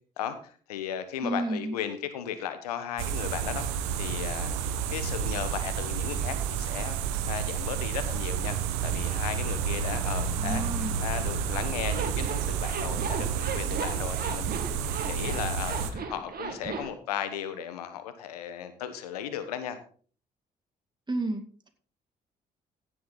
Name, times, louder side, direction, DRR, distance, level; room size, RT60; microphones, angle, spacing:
voice 1, 0.2-4.6 4.9-14.6 15.0-19.8, left 9 dB, 90° left, 10 dB, 1.2 m, -36 dB
voice 2, 1.2-1.7 10.4-11.0 21.1-21.7, right 2 dB, 25° right, 5 dB, 2.3 m, -32 dB
sound 1, 3.0-15.9, right 7 dB, 80° right, 1.2 m, -30 dB
Zipper (clothing), 11.8-16.9, right 5 dB, 55° right, 2.5 m, -36 dB
16.0 x 7.7 x 4.0 m, 0.43 s
hypercardioid pair, 50°, 19 cm